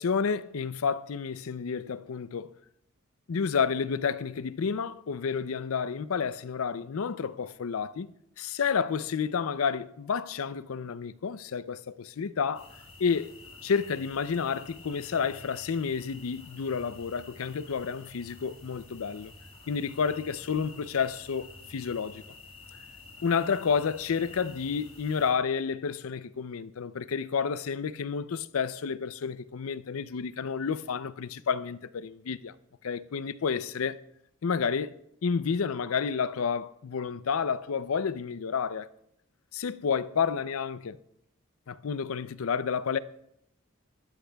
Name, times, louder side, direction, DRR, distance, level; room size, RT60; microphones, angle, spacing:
voice 1, 0.0-2.6 3.3-12.7 13.0-13.4 13.6-19.3 19.7-22.2 23.2-32.5 32.8-34.0 34.4-35.0 35.2-38.9 39.5-41.0 41.7-43.0, left 6 dB, 75° left, 0.5 m, -30 dB
sound 1, 12.5-25.3, left 3 dB, 30° left, 6.2 m, -50 dB
22.0 x 13.0 x 2.3 m
head